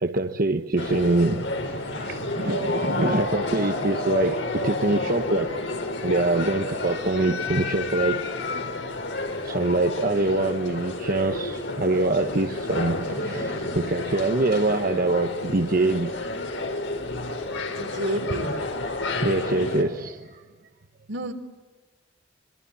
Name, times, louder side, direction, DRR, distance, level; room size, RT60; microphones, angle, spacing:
voice 1, 0.0-5.5 6.0-8.2 9.4-16.3 19.2-20.4, right 2 dB, 50° right, 1.1 m, -24 dB
sound 1, 0.8-19.8, left 2 dB, 75° left, 4.6 m, -30 dB
voice 2, 17.8-18.5 21.1-21.3, right 1 dB, 80° right, 3.5 m, -29 dB
26.0 x 25.0 x 8.7 m
head